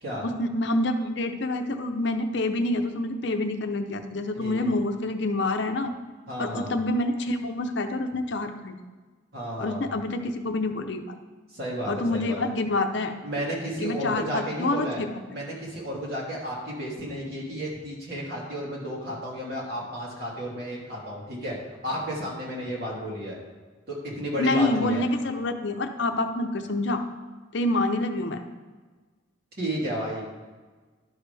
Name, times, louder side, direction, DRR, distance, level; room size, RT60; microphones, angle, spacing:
voice 1, 0.2-5.9 6.4-8.7 9.6-11.1 11.9-13.2 13.8-15.1 24.4-27.0 27.5-28.4, left 2 dB, 60° left, 6 dB, 0.7 m, -27 dB
voice 2, 6.3-6.8 9.3-10.0 11.5-12.4 13.2-15.0 15.3-21.5 21.8-23.4 23.9-25.0 29.6-30.2, equal, 55° right, -5 dB, 2.9 m, -32 dB
12.0 x 6.4 x 3.4 m, 1.4 s
head